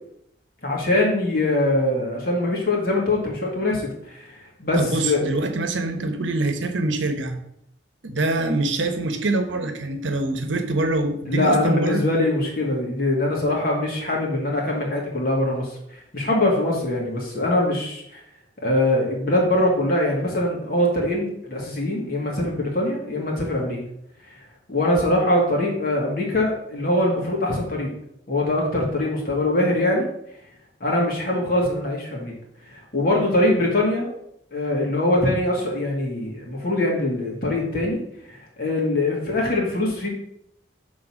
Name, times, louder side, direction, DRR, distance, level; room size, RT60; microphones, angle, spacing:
voice 1, 0.6-5.2 11.3-15.8 16.1-18.2 18.6-23.8 24.7-27.9 28.3-30.1 30.8-32.3 32.7-34.1 34.5-38.0 38.3-40.1, left 1 dB, 50° left, -2 dB, 2.1 m, -23 dB
voice 2, 4.7-7.4 8.0-12.0, right 2 dB, 85° right, 7 dB, 1.0 m, -24 dB
6.3 x 4.0 x 6.2 m, 0.76 s
head